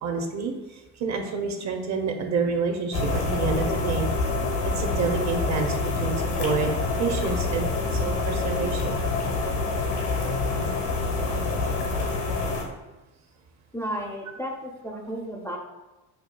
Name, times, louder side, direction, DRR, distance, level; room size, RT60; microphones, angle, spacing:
voice 1, 0.0-0.5 1.0-4.1 4.6-6.7 7.0-9.0, right 5 dB, 40° right, 4 dB, 0.6 m, -28 dB
sound 1, 2.9-12.6, left 3 dB, 80° left, 1.0 m, -26 dB
voice 2, 13.7-15.6, equal, 5° left, 0 dB, 0.4 m, -33 dB
5.6 x 2.3 x 2.2 m, 1.1 s
supercardioid pair, 80°, 42 cm